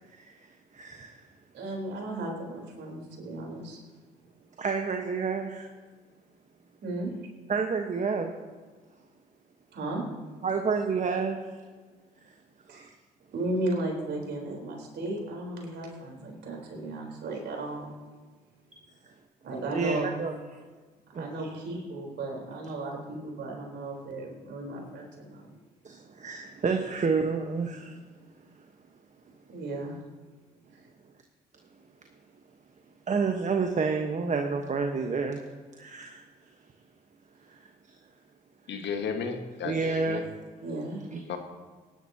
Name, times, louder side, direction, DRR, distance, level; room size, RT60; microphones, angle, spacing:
voice 1, 0.7-1.2 4.6-5.7 7.5-8.3 10.4-11.4 12.7-12.9 19.7-20.3 21.1-21.3 25.8-28.0 33.1-35.4 35.8-36.2 37.5-37.6 39.6-40.4 41.1-41.2, right 5 dB, 40° right, 4 dB, 1.2 m, -29 dB
voice 2, 1.5-3.8 6.8-7.1 9.7-10.0 12.7-12.9 13.3-17.9 19.4-20.1 21.1-25.5 29.5-30.0 30.7-30.9 40.6-41.0, right 2 dB, 60° right, -1 dB, 4.0 m, -35 dB
voice 3, 38.7-40.2 41.3-41.4, left 6 dB, 65° left, 5 dB, 1.6 m, -33 dB
17.0 x 11.5 x 2.9 m, 1.4 s
hypercardioid pair, 55°, 20 cm